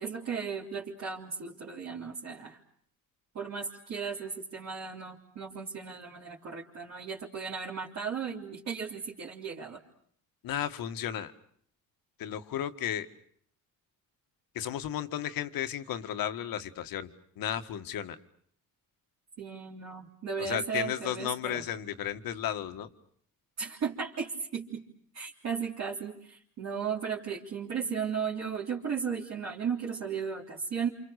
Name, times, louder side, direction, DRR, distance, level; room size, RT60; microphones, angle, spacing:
voice 1, 0.0-2.6 3.3-9.8 19.4-21.6 23.6-24.8 25.1-30.9, right 6 dB, 50° right, -4 dB, 3.5 m, -35 dB
voice 2, 10.4-11.3 12.2-13.1 14.6-17.1 17.4-18.2 20.4-22.9, left 10 dB, 75° left, 9 dB, 1.9 m, -34 dB
28.5 x 28.0 x 6.6 m, 0.63 s
cardioid pair, 130°, 35 cm